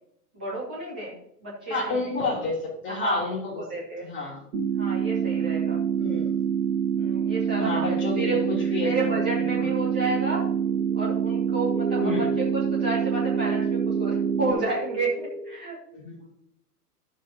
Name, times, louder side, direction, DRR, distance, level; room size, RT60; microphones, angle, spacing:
voice 1, 0.3-2.0 2.9-3.2 3.6-4.1 4.7-5.8 7.0-8.4 8.8-10.5 10.9-15.8, right 2 dB, 5° right, -4 dB, 0.3 m, -31 dB
voice 2, 1.7-3.6 4.0-4.4 5.9-6.3 7.6-8.9 9.5-9.7 12.0-12.3 15.9-16.3, left 3 dB, 25° left, -2 dB, 3.0 m, -30 dB
sound 1, 4.5-14.5, right 8 dB, 45° right, 1.5 m, -26 dB
sound 2, 10.0-15.6, equal, 80° right, 1.4 m, -36 dB
12.0 x 6.5 x 2.7 m, 0.73 s
figure-of-eight pair, 105°, 47 cm